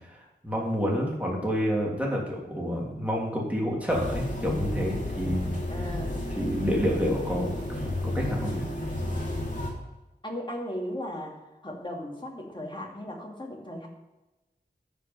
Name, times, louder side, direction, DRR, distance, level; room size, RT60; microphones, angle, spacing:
voice 1, 0.4-5.6 6.4-8.6, equal, 10° right, -3 dB, 3.1 m, -29 dB
sound 1, 3.9-9.7, left 1 dB, 45° left, 2.8 m, -32 dB
voice 2, 5.7-6.1 8.4-8.7 10.2-13.9, left 1 dB, 25° left, -1 dB, 2.5 m, -37 dB
13.5 x 5.2 x 5.6 m, 1.0 s
wide cardioid pair, 60°, 18 cm